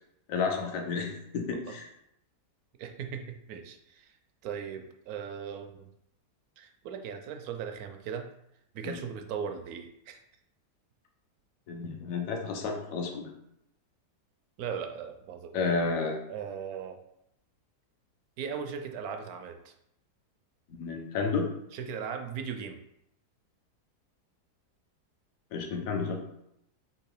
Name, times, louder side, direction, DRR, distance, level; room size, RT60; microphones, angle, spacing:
voice 1, 0.3-1.9 8.8-9.0 11.7-13.3 15.5-16.2 20.7-21.5 25.5-26.2, left 4 dB, 65° left, 2 dB, 1.1 m, -31 dB
voice 2, 2.8-4.2 4.4-5.9 6.6-8.3 8.7-10.2 14.6-15.7 16.3-17.0 18.4-19.7 21.7-22.8, right 7 dB, 70° right, 5 dB, 1.0 m, -38 dB
3.8 x 2.9 x 4.6 m, 0.79 s
omnidirectional pair, 1.7 m